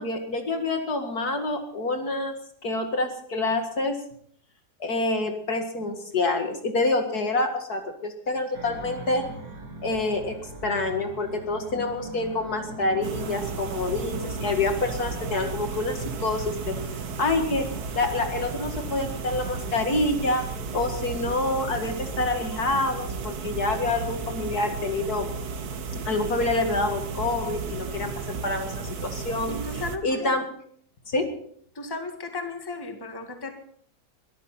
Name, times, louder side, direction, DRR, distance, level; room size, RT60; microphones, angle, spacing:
voice 1, 0.0-2.3 2.6-4.0 4.8-9.3 9.8-10.4 10.6-16.7 17.2-17.7 18.0-20.4 20.7-25.3 26.1-29.5 30.0-30.4 31.1-31.3, left 2 dB, 55° left, 5 dB, 2.4 m, -27 dB
sound 1, 8.5-18.7, right 2 dB, 75° right, 4.5 m, -41 dB
sound 2, 13.0-30.0, right 5 dB, 55° right, 1.7 m, -34 dB
voice 2, 29.5-30.4 31.7-33.5, left 3 dB, 10° left, 4 dB, 1.9 m, -35 dB
22.0 x 13.5 x 4.3 m, 0.62 s
omnidirectional pair, 2.0 m